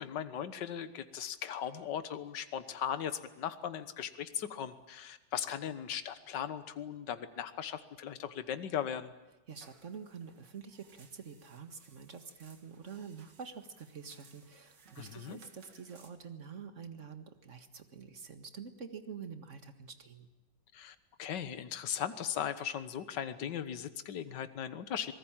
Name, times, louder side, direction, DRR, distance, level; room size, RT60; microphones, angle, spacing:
voice 1, 0.0-9.1 15.0-15.4 20.7-25.1, left 9 dB, 65° left, 11 dB, 1.8 m, -38 dB
voice 2, 9.5-20.3, right 6 dB, 40° right, 8 dB, 1.9 m, -47 dB
sound 1, 9.5-16.1, right 5 dB, 60° right, 2.8 m, -63 dB
26.0 x 19.5 x 8.9 m, 1.1 s
omnidirectional pair, 2.1 m